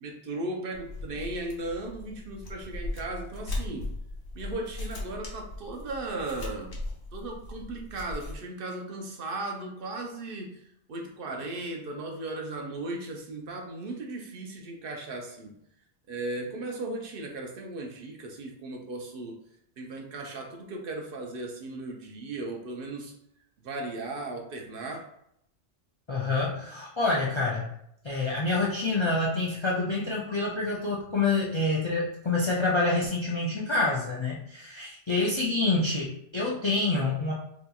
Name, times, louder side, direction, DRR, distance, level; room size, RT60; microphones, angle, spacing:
voice 1, 0.0-3.9 4.4-6.8 7.1-10.6 10.9-15.5 16.1-19.4 19.8-23.1 23.6-25.1, right 2 dB, 65° right, 1 dB, 0.7 m, -36 dB
sound 1, 0.7-8.3, left 2 dB, 70° left, 1.0 m, -38 dB
voice 2, 26.1-27.7 28.0-37.3, left 3 dB, 45° left, -4 dB, 0.4 m, -27 dB
4.0 x 2.7 x 2.3 m, 0.74 s
omnidirectional pair, 1.1 m